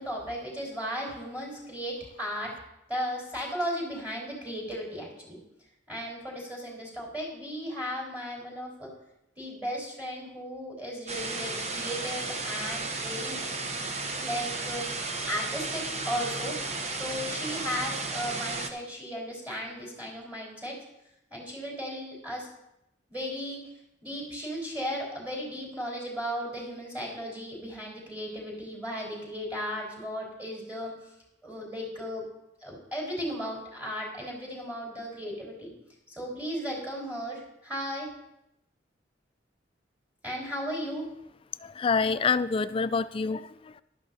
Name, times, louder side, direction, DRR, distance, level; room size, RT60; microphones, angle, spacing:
voice 1, 0.0-2.5 2.9-5.4 5.9-8.9 9.4-13.4 14.2-16.6 16.9-20.8 21.3-22.5 23.1-23.6 24.0-30.9 31.4-32.2 32.6-35.7 36.1-38.1 40.2-41.0, equal, 10° right, -2 dB, 4.2 m, -35 dB
sound 1, 11.1-18.7, right 3 dB, 35° right, 0.8 m, -34 dB
voice 2, 41.6-43.8, left 5 dB, 30° left, 14 dB, 0.3 m, -27 dB
15.0 x 12.0 x 2.7 m, 0.83 s
head